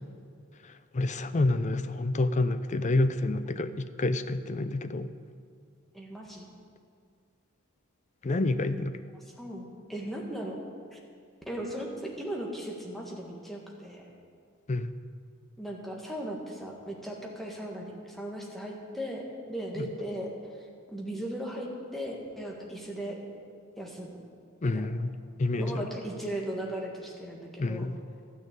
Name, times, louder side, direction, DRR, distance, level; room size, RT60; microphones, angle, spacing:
voice 1, 0.6-5.1 8.2-9.0 14.7-14.9 19.8-19.9 24.6-25.1 25.4-25.9 27.6-28.0, left 2 dB, 35° left, 12 dB, 0.5 m, -28 dB
voice 2, 5.9-6.4 9.4-10.6 10.9-11.0 11.5-14.1 15.6-20.3 20.9-23.2 23.8-24.2 24.6-24.7 25.6-27.8, right 1 dB, ahead, -2 dB, 1.7 m, -37 dB
12.5 x 6.5 x 8.9 m, 2.2 s
head